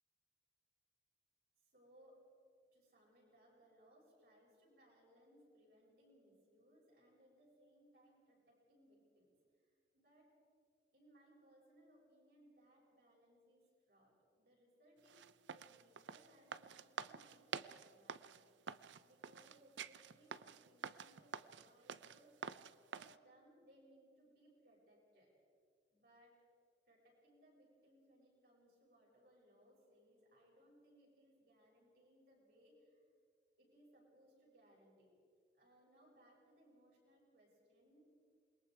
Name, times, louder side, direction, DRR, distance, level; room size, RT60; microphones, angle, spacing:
voice 1, 1.6-2.2 2.7-10.3 10.9-15.2 15.5-22.7 22.9-25.3 25.9-26.4 26.9-33.0 33.6-35.1 35.5-38.0, right 1 dB, 60° right, -3 dB, 7.2 m, -68 dB
sound 1, 15.1-23.2, right 6 dB, 85° right, 0.6 m, -49 dB
28.0 x 22.0 x 4.8 m, 2.2 s
head